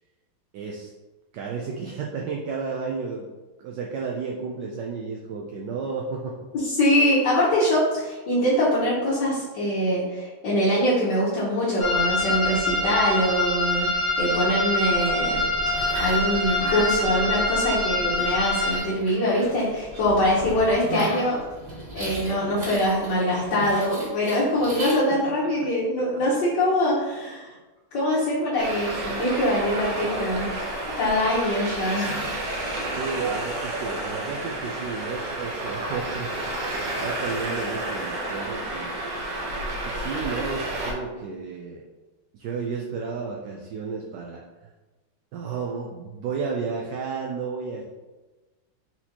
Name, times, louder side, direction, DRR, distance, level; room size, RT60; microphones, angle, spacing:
voice 1, 0.5-0.9 1.3-3.3 3.6-6.4 25.2-25.3 32.9-36.3 37.0-39.0 39.8-41.8 42.3-44.4 45.3-47.8, right 5 dB, 75° right, -1 dB, 1.0 m, -32 dB
voice 2, 6.5-15.4 16.0-21.5 21.9-27.5 27.9-30.5 31.0-32.3, equal, 60° left, -9 dB, 1.5 m, -23 dB
sound 1, 11.8-18.8, left 2 dB, 40° left, 0.8 m, -25 dB
sound 2, 14.8-25.0, right 1 dB, 45° right, 1.2 m, -37 dB
Traffic noise roadway noise, 28.6-40.9, right 1 dB, 60° right, 1.3 m, -31 dB
4.3 x 4.2 x 2.8 m, 1.2 s
omnidirectional pair, 2.3 m